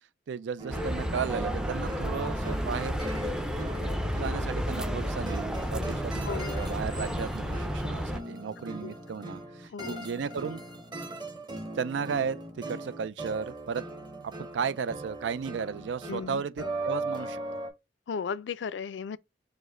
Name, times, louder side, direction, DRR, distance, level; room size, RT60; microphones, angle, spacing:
voice 1, 0.3-3.1 3.8-3.9 4.2-10.6 11.7-13.8 14.2-17.4, right 6 dB, 85° right, 0.4 m, -34 dB
sound 1, 0.6-17.7, right 2 dB, 25° right, 1.0 m, -39 dB
sound 2, 0.7-8.2, equal, 5° right, 0.4 m, -32 dB
voice 2, 6.2-6.6 8.8-8.9 9.7-10.0 16.1-16.4 18.1-19.2, left 6 dB, 85° left, 0.4 m, -35 dB
5.0 x 2.1 x 3.6 m
head